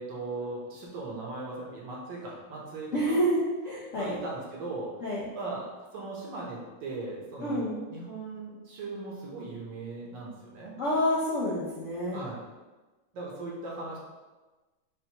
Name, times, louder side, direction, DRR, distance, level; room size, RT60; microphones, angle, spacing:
voice 1, 0.0-3.2 3.9-4.9 5.3-10.8 12.1-12.4 13.1-14.0, right 3 dB, 65° right, -4 dB, 1.4 m, -38 dB
voice 2, 2.9-3.4 3.6-4.2 5.0-5.3 7.4-7.8 10.8-12.2, equal, 65° left, -7 dB, 0.7 m, -28 dB
5.5 x 2.5 x 2.8 m, 1.2 s
omnidirectional pair, 2.2 m